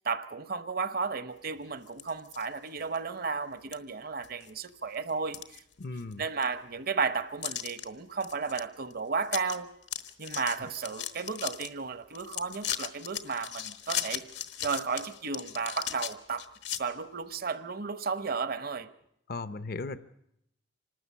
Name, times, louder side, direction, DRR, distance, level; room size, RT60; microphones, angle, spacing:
voice 1, 0.0-5.6 6.2-9.7 10.2-14.3 14.6-16.5 16.8-18.9, right 5 dB, 55° right, 1.0 m, -33 dB
sound 1, 1.9-2.5 2.9-3.0 3.7-3.8 4.2-4.7 5.1-6.1 6.4-6.5 7.4-7.8 8.2-8.6 8.9-9.0 9.2-9.6 9.8-11.7 12.1-16.8, left 10 dB, 75° left, 1.2 m, -37 dB
voice 2, 5.8-6.2 19.3-20.0, left 3 dB, 55° left, 0.7 m, -36 dB
26.0 x 13.0 x 8.3 m
head